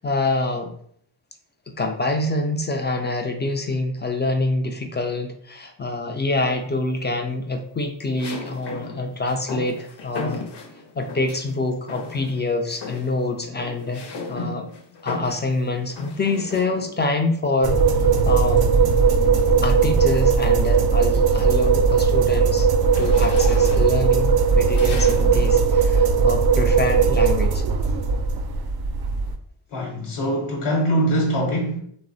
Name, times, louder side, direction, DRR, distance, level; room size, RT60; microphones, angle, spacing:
voice 1, 0.0-0.7 1.7-10.4 11.0-14.0 14.3-14.7 15.0-17.8 18.2-18.6 19.6-22.7 23.0-27.6, left 2 dB, 25° left, 5 dB, 0.3 m, -26 dB
sound 1, 6.3-6.9 8.2-11.5 11.9-12.4 12.7-17.1 18.3-19.7 20.2-20.4 20.8-25.6, left 3 dB, 55° left, 0.7 m, -36 dB
sound 2, 17.6-29.4, right 5 dB, 50° right, 0.5 m, -18 dB
voice 2, 29.7-31.8, right 1 dB, 75° left, -2 dB, 1.0 m, -23 dB
2.9 x 2.0 x 2.6 m, 0.64 s
cardioid pair, 45°, 49 cm